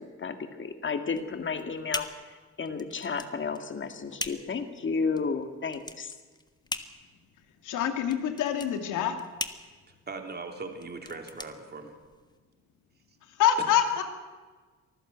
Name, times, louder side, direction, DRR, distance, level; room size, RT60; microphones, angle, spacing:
voice 1, 0.0-2.1 2.6-6.1, left 5 dB, 40° left, 8 dB, 2.2 m, -32 dB
sound 1, 1.1-12.4, left 2 dB, 15° left, 1.4 m, -41 dB
voice 2, 7.6-9.1 13.4-14.0, left 9 dB, 85° left, 6 dB, 2.5 m, -25 dB
voice 3, 10.1-11.9, right 3 dB, 35° right, 4 dB, 3.3 m, -39 dB
24.5 x 14.5 x 8.2 m, 1.4 s
cardioid pair, 90°, 30 cm